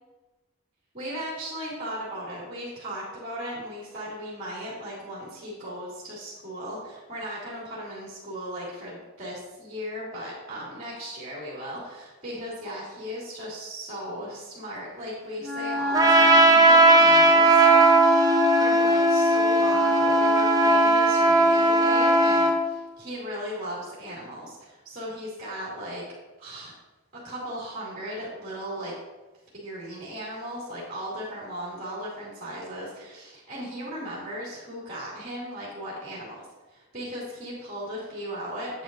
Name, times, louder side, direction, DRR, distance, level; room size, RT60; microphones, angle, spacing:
voice 1, 0.9-26.0 26.4-26.8 27.2-28.9 29.5-38.8, equal, 35° right, -7 dB, 2.3 m, -37 dB
Wind instrument woodwind instrument, 15.4-22.6, left 3 dB, ahead, 1.7 m, -29 dB
Trumpet, 15.9-22.6, right 2 dB, 15° right, 0.6 m, -18 dB
9.0 x 8.3 x 2.6 m, 1.2 s
head